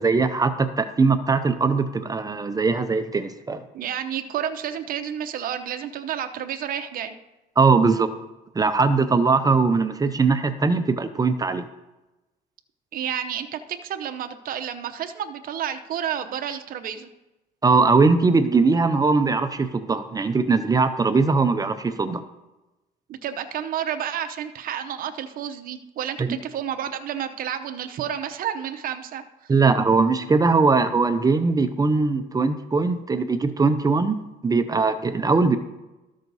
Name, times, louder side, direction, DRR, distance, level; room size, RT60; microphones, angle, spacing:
voice 1, 0.0-3.6 7.6-8.2 8.5-11.7 17.6-22.2 26.2-26.4 29.5-35.6, right 4 dB, 20° right, 10 dB, 0.6 m, -20 dB
voice 2, 3.7-7.1 12.9-17.1 23.1-29.5, right 9 dB, 55° right, 8 dB, 0.8 m, -30 dB
13.0 x 6.3 x 4.1 m, 1.0 s
cardioid pair, 110°, 17 cm